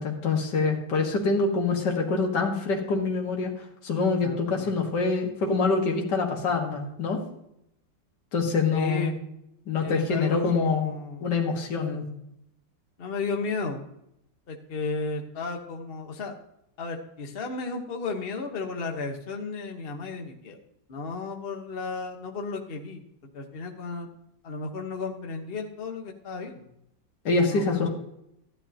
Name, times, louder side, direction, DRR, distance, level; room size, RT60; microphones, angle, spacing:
voice 1, 0.0-3.5 3.8-7.2 8.3-9.2 9.7-10.9 11.2-12.1 27.2-27.9, left 4 dB, 65° left, 1 dB, 2.3 m, -25 dB
voice 2, 4.2-4.8 8.7-9.2 9.8-11.3 13.0-13.8 14.5-16.3 16.8-20.6 20.9-23.0 23.3-24.1 24.4-26.7 27.4-27.9, left 3 dB, 35° left, 3 dB, 1.3 m, -34 dB
13.5 x 11.0 x 2.9 m, 0.79 s
omnidirectional pair, 2.0 m